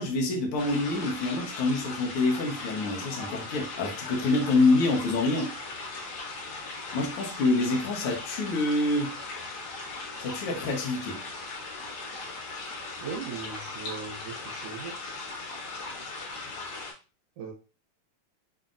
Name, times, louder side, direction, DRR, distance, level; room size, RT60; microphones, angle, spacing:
voice 1, 0.0-5.5 6.9-9.2 10.2-11.2, left 2 dB, 65° left, 0 dB, 1.4 m, -26 dB
sound 1, 0.6-16.9, left 3 dB, 80° left, 2.7 m, -38 dB
voice 2, 13.0-14.9 17.4-17.5, right 6 dB, 65° right, -1 dB, 1.7 m, -38 dB
5.6 x 2.7 x 2.4 m, 0.33 s
omnidirectional pair, 3.4 m